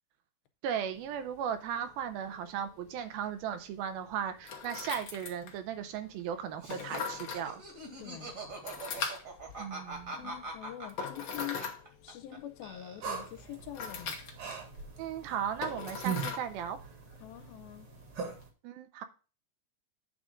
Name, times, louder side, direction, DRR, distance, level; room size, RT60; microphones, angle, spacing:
voice 1, 0.6-7.6 9.6-10.1 15.0-16.8 18.6-19.0, right 8 dB, 85° right, 2.6 m, -36 dB
sound 1, 0.9-18.4, left 5 dB, 65° left, 1.2 m, -43 dB
Laughter, 6.6-12.4 12.6-13.4, right 2 dB, 35° right, 1.4 m, -43 dB
voice 2, 8.0-8.4 10.1-14.2 17.2-17.9, left 13 dB, 85° left, 2.5 m, -44 dB
sound 2, 13.0-18.5, right 6 dB, 50° right, 1.7 m, -41 dB
9.0 x 3.7 x 6.4 m
omnidirectional pair, 4.2 m